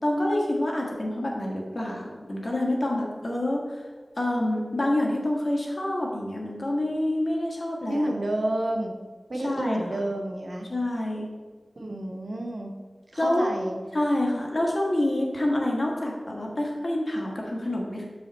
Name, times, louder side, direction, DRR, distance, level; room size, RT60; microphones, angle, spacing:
voice 1, 0.0-3.8 4.2-8.1 9.4-9.8 10.7-11.3 13.2-13.5 13.9-18.1, left 1 dB, 60° left, -1 dB, 1.5 m, -27 dB
voice 2, 7.9-8.9 9.3-10.7 11.8-12.7 13.1-13.8, right 1 dB, 80° right, 2 dB, 0.9 m, -29 dB
7.3 x 4.9 x 4.1 m, 1.4 s
wide cardioid pair, 55°, 0 cm